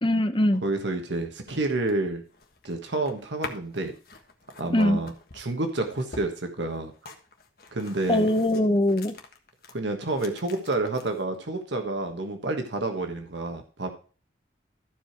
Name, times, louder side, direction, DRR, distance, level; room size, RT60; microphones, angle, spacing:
voice 1, 0.0-0.6 4.7-5.0 8.1-9.1, left 1 dB, 25° left, 8 dB, 0.8 m, -22 dB
voice 2, 0.6-2.2 2.6-3.9 4.6-6.9 7.7-8.3 9.7-13.9, right 2 dB, 80° right, 5 dB, 1.4 m, -29 dB
sound 1, 1.3-9.7 10.0-11.2, left 3 dB, 55° left, 1.5 m, -46 dB
13.5 x 5.1 x 4.5 m, 0.37 s
head